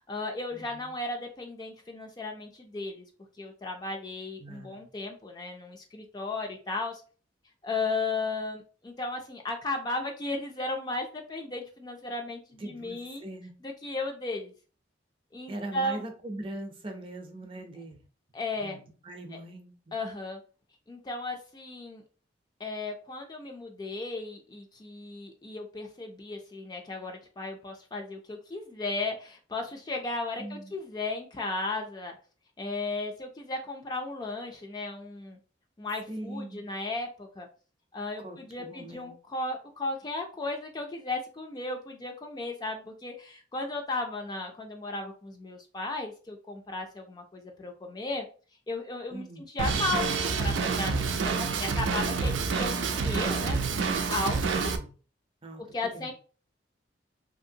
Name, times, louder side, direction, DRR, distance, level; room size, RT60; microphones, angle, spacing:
voice 1, 0.0-3.1 3.4-7.0 7.6-13.2 13.6-14.5 15.3-16.0 18.3-18.8 19.9-20.4 20.9-22.0 22.6-32.1 32.6-35.4 35.8-37.5 37.9-48.2 48.7-53.6 54.1-54.7 55.7-56.1, left 2 dB, 20° left, 2 dB, 0.3 m, -35 dB
voice 2, 0.5-0.9 4.4-4.9 12.6-13.5 15.5-18.0 18.6-20.0 30.4-30.7 36.1-36.7 38.2-39.1 49.1-49.5 54.5-55.0 55.4-55.6 55.9-56.1, right 1 dB, 30° right, 4 dB, 0.5 m, -41 dB
Drum kit, 49.6-54.8, right 4 dB, 90° right, 0.4 m, -28 dB
2.8 x 2.7 x 2.6 m, 0.38 s
head